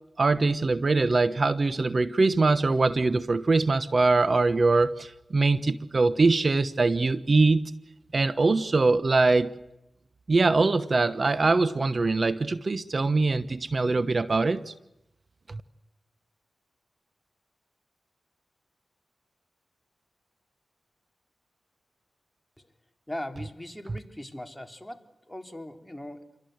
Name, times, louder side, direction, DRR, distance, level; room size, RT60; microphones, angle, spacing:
voice 1, 0.2-7.7 8.1-9.5 10.3-14.7 15.5-15.6, right 3 dB, 55° right, 14 dB, 1.1 m, -23 dB
voice 2, 23.1-26.4, left 1 dB, 10° left, 5 dB, 3.5 m, -40 dB
29.0 x 24.0 x 8.1 m, 0.86 s
cardioid pair, 45°, 0 cm